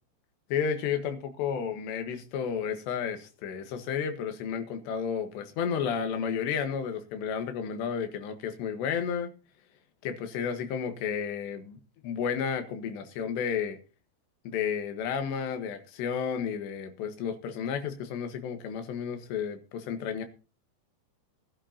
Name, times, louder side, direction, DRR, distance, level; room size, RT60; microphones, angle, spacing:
voice 1, 0.5-9.3 10.0-13.8 14.5-20.3, left 7 dB, 80° left, 3.6 m, -32 dB
19.5 x 11.0 x 2.8 m
omnidirectional pair, 4.9 m